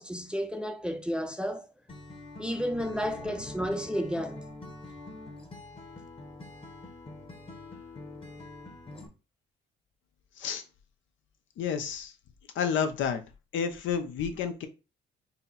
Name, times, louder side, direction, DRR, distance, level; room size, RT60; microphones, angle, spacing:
voice 1, 0.0-1.6 2.4-4.4, equal, 5° right, 0.5 m, -32 dB
Acoustic guitar, 1.9-9.1, left 2 dB, 25° left, 1.1 m, -45 dB
voice 2, 11.6-12.1 12.5-13.2 13.5-14.7, left 7 dB, 75° left, 0.7 m, -30 dB
4.1 x 2.0 x 4.0 m
cardioid pair, 90°, 20 cm